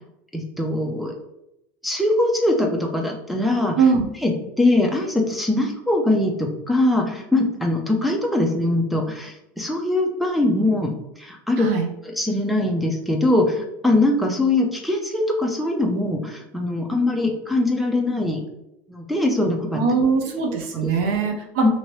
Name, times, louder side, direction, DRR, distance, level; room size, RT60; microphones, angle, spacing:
voice 1, 0.3-1.1 1.8-3.8 4.2-11.7 12.2-18.4 18.9-19.8 20.8-20.9 21.6-21.7, left 2 dB, ahead, -1 dB, 0.3 m, -22 dB
voice 2, 11.6-11.9 19.7-21.6, right 5 dB, 70° right, 2 dB, 0.6 m, -21 dB
2.9 x 2.7 x 3.0 m, 0.83 s
cardioid pair, 165°, 7 cm